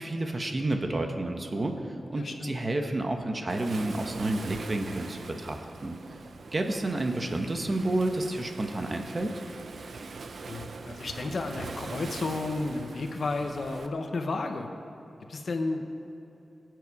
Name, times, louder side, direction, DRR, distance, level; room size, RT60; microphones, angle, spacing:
voice 1, 0.0-1.7 2.1-6.0 6.5-9.3, right 2 dB, 30° right, 4 dB, 1.0 m, -30 dB
voice 2, 2.1-2.6 10.5-14.7 15.3-15.8, left 3 dB, 60° left, 5 dB, 1.0 m, -32 dB
Waves surf, 3.5-13.9, right 4 dB, 70° right, 0.6 m, -42 dB
21.5 x 7.9 x 4.8 m, 2.8 s
wide cardioid pair, 140°, 0 cm